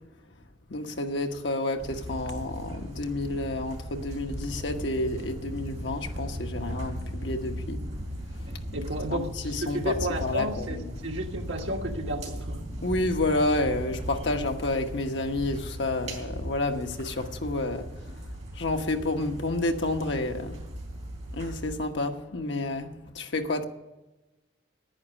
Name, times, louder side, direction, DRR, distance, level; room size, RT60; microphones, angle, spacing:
voice 1, 0.7-7.8 9.1-9.9 10.2-11.1 12.8-17.9 18.6-20.6 21.3-23.6, left 2 dB, 65° left, 1.2 m, -30 dB
sound 1, 1.8-21.8, equal, 35° right, 3.7 m, -37 dB
voice 2, 8.5-12.6, right 1 dB, 75° right, 1.6 m, -33 dB
10.5 x 9.9 x 8.2 m
head